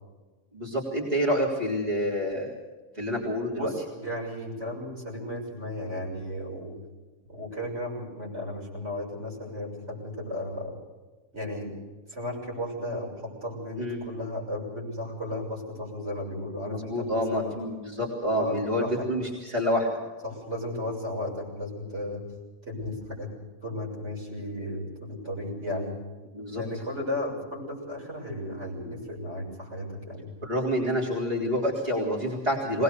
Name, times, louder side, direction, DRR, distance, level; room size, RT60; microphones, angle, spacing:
voice 1, 0.5-2.5 3.0-3.7 13.8-14.0 16.6-20.0 26.3-26.6 30.4-32.8, equal, 35° right, -3 dB, 3.7 m, -28 dB
voice 2, 3.5-6.8 7.3-10.8 11.3-11.7 12.1-17.5 18.3-19.1 20.2-22.2 22.7-23.3 23.6-26.0 26.6-30.3, left 1 dB, 70° right, -3 dB, 7.1 m, -34 dB
22.0 x 19.5 x 6.8 m, 1.3 s
omnidirectional pair, 1.2 m